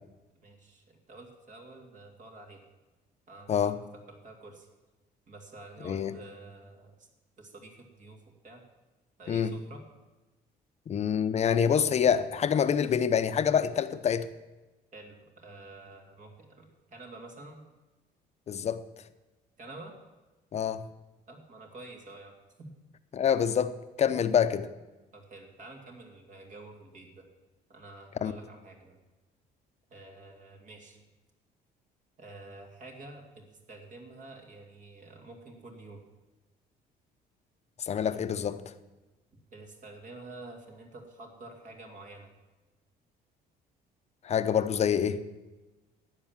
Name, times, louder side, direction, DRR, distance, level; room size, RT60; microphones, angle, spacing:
voice 1, 0.4-2.6 3.3-4.7 5.3-7.1 7.4-8.6 9.2-9.9 14.9-17.6 19.6-19.9 21.3-22.7 24.1-24.2 25.1-27.2 27.7-29.0 29.9-31.0 32.2-36.0 39.5-42.3, right 2 dB, 50° right, 2.7 m, -49 dB
voice 2, 3.5-3.8 5.8-6.2 9.3-9.5 10.9-14.3 18.5-18.8 20.5-20.8 23.1-24.7 28.2-28.3 37.8-38.6 44.2-45.2, left 8 dB, 40° left, 0.8 m, -26 dB
12.0 x 8.9 x 7.3 m
cardioid pair, 110°, 17 cm